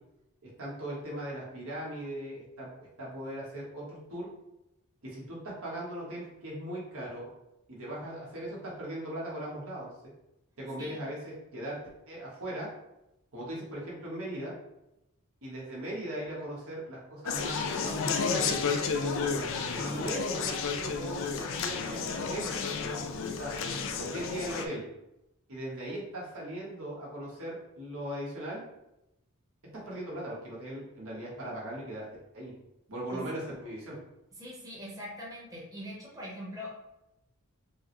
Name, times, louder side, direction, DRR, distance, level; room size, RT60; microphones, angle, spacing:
voice 1, 0.4-4.3 5.0-7.3 7.7-9.9 10.6-11.8 12.1-12.7 13.3-14.5 15.4-18.6 19.7-22.9 23.2-23.6 24.0-24.8 25.5-28.6 29.9-32.0 32.3-32.5 32.9-34.0, right 1 dB, 70° right, -5 dB, 1.3 m, -38 dB
Conversation, 17.3-24.7, left 5 dB, 60° left, 0.4 m, -32 dB
voice 2, 34.4-36.7, equal, 15° right, -5 dB, 1.1 m, -42 dB
5.4 x 2.2 x 3.1 m, 0.89 s
head